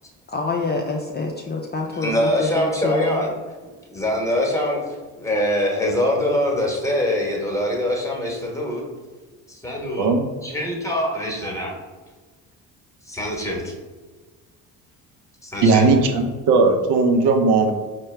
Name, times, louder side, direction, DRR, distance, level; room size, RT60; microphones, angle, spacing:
voice 1, 0.3-3.2, left 3 dB, 25° left, 0 dB, 0.4 m, -27 dB
voice 2, 1.9-3.3 3.9-4.8 5.1-8.8 9.5-10.1 10.4-11.8 13.1-13.7 15.4-16.2, left 1 dB, 5° left, -1 dB, 1.0 m, -23 dB
voice 3, 10.0-10.3 15.6-17.7, right 3 dB, 70° right, 4 dB, 0.6 m, -17 dB
4.5 x 2.2 x 3.2 m, 1.4 s
supercardioid pair, 65°, 43 cm